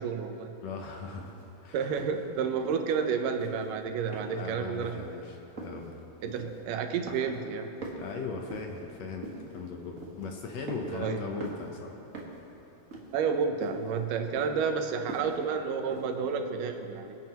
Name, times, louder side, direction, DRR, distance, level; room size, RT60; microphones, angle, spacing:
voice 1, 0.0-0.5 1.7-5.0 6.2-7.7 10.9-11.2 13.1-17.2, right 6 dB, 90° right, 6 dB, 2.4 m, -30 dB
voice 2, 0.6-1.9 4.3-6.0 7.9-12.0, left 4 dB, 70° left, 2 dB, 1.8 m, -39 dB
sound 1, 1.2-1.4 2.0-2.2 2.6-3.0 3.3-3.7 4.1-4.5 4.8-5.1 5.6-5.9 6.3-6.7 7.1-7.5 7.8-8.8 9.2-9.6 10.0-10.3 10.7-11.1 11.4-11.7 12.1-12.4 12.9-13.3 13.6-13.9 14.4-14.7 15.1-15.4 15.9-16.1, right 2 dB, 40° right, 1.2 m, -42 dB
25.0 x 9.3 x 3.0 m, 2.9 s
omnidirectional pair, 3.7 m